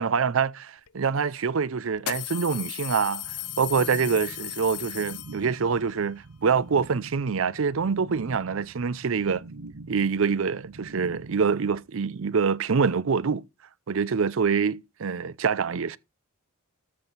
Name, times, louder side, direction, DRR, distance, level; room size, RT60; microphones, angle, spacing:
voice 1, 0.0-9.4 9.9-13.4 13.9-16.0, right 5 dB, 60° right, 0.5 m, -25 dB
sound 1, 0.9-1.0 1.9-5.7, left 15 dB, 85° left, 0.6 m, -36 dB
sound 2, 3.2-11.8, right 3 dB, 80° right, 1.1 m, -45 dB
13.5 x 6.4 x 4.0 m
head